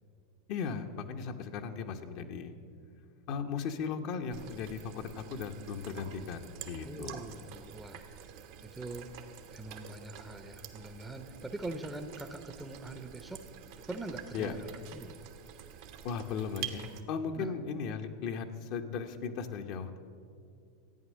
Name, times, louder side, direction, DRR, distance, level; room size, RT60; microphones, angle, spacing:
voice 1, 0.5-2.5 3.3-7.2 14.3-14.5 16.0-20.0, left 6 dB, 55° left, 5 dB, 0.9 m, -37 dB
sound 1, 4.3-17.0, right 9 dB, 60° right, 1.1 m, -47 dB
voice 2, 6.8-8.0 8.6-9.1 9.5-13.4 13.9-15.1 17.4-17.5, right 2 dB, 10° right, 7 dB, 0.7 m, -43 dB
13.5 x 9.1 x 6.3 m, 2.5 s
hypercardioid pair, 95°, 0 cm